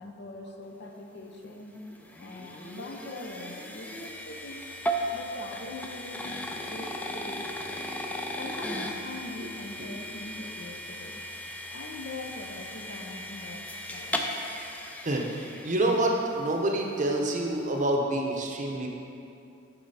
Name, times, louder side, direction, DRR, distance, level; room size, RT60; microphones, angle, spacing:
voice 1, 0.0-1.8 2.2-4.7 5.1-7.8 8.4-11.2 11.7-14.2, left 2 dB, 55° left, 3 dB, 0.7 m, -42 dB
sound 1, 1.4-16.6, equal, 5° left, 0.4 m, -37 dB
voice 2, 15.0-18.9, right 1 dB, 40° right, 0 dB, 0.7 m, -27 dB
9.7 x 4.7 x 4.1 m, 2.7 s
head